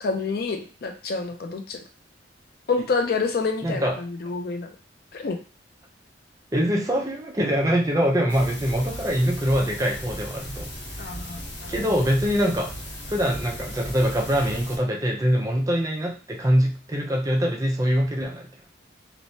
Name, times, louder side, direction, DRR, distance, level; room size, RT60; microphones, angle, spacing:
voice 1, 0.0-1.8 2.7-4.7 5.1-5.4 11.0-11.7, left 4 dB, 55° left, 5 dB, 0.4 m, -28 dB
voice 2, 3.6-4.0 6.5-10.7 11.7-12.7 13.1-18.5, equal, 20° right, 1 dB, 0.4 m, -23 dB
sound 1, 8.3-14.8, equal, 85° left, 1.0 m, -37 dB
3.0 x 2.1 x 2.6 m, 0.36 s
head